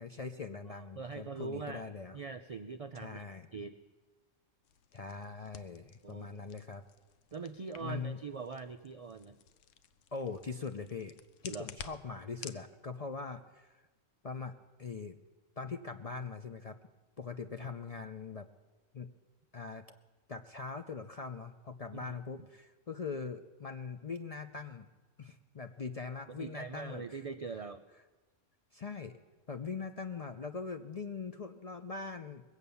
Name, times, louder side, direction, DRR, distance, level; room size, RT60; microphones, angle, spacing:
voice 1, 0.0-2.2 3.0-3.5 4.9-6.8 7.8-8.2 10.1-11.1 11.4-13.8 14.2-15.2 15.6-16.8 17.2-18.5 18.9-19.1 19.5-19.8 20.3-24.9 25.2-27.2 28.7-29.1 29.5-32.4, left 4 dB, 45° left, 7 dB, 0.5 m, -42 dB
voice 2, 0.9-1.8 2.1-3.2 3.5-3.8 6.0-6.4 7.3-9.4 11.5-11.7 21.9-22.1 26.4-27.8, right 4 dB, 70° right, 9 dB, 0.3 m, -42 dB
sound 1, 4.6-12.6, left 8 dB, 90° left, 1.0 m, -52 dB
21.5 x 8.2 x 6.9 m, 1.2 s
omnidirectional pair, 1.3 m